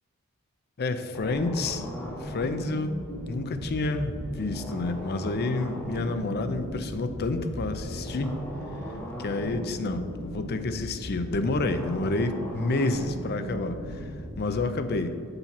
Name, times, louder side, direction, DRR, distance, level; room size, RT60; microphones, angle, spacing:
voice 1, 0.8-1.8 2.2-3.0 3.3-8.4 9.2-14.1 14.4-15.2, left 2 dB, 50° left, 9 dB, 0.6 m, -29 dB
sound 1, 1.1-14.4, equal, 10° left, 1.5 m, -37 dB
6.8 x 5.6 x 5.9 m, 2.3 s
head